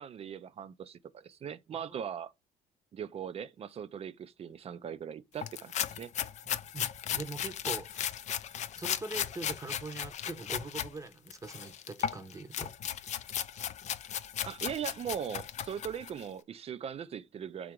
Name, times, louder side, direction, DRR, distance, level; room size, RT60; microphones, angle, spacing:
voice 1, 0.0-2.3 2.9-6.1 14.5-17.7, right 8 dB, 35° right, 0.4 m, -40 dB
voice 2, 1.7-2.0 6.4-8.1 8.7-12.7, right 3 dB, 20° right, 0.8 m, -43 dB
sound 1, 5.4-10.9 11.3-16.2, left 9 dB, 45° left, 0.4 m, -36 dB
3.7 x 2.9 x 4.5 m
cardioid pair, 110°, 17 cm